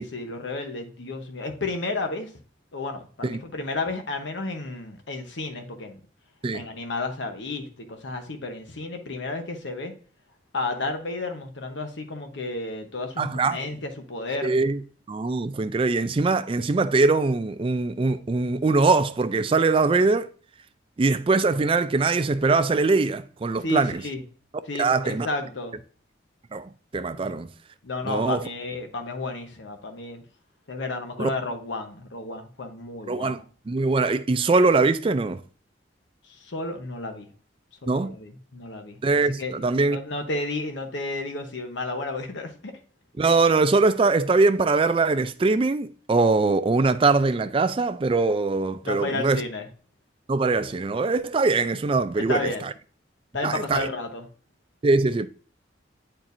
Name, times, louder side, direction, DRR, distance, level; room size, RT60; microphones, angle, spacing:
voice 1, 0.0-2.3 2.7-6.0 6.5-9.9 10.5-14.5 23.6-24.2 24.7-25.8 27.2-27.3 27.8-30.2 30.7-33.4 36.3-37.3 37.8-42.8 48.8-49.7 52.2-52.6 53.3-54.3, left 2 dB, 80° left, 1.0 m, -32 dB
voice 2, 13.2-13.6 14.4-14.8 15.1-20.3 21.0-24.0 24.7-25.3 26.5-27.5 28.0-28.4 31.2-31.3 33.1-33.4 33.7-35.4 37.9-38.2 39.0-40.0 43.2-49.4 50.3-52.7 53.4-53.9 54.8-55.3, right 3 dB, 30° right, 0.4 m, -22 dB
8.7 x 4.4 x 2.6 m
head